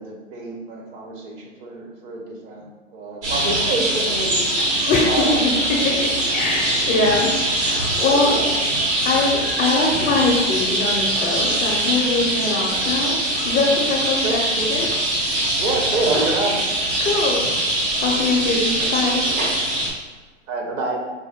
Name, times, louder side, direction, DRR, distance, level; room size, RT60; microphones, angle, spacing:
voice 1, 0.0-2.7 2.9-4.4 5.0-5.6 8.1-8.6 8.9-9.2 14.2-14.4 15.6-16.5 20.5-21.0, right 2 dB, 50° right, 1 dB, 1.0 m, -27 dB
sound 1, 3.2-19.9, right 1 dB, 65° right, 1.5 m, -22 dB
voice 2, 4.9-5.3 5.7-8.3 9.0-14.9 17.0-17.4 18.0-19.2, left 3 dB, 20° left, -2 dB, 0.5 m, -22 dB
5.1 x 2.1 x 3.5 m, 1.3 s
hypercardioid pair, 120°, 38 cm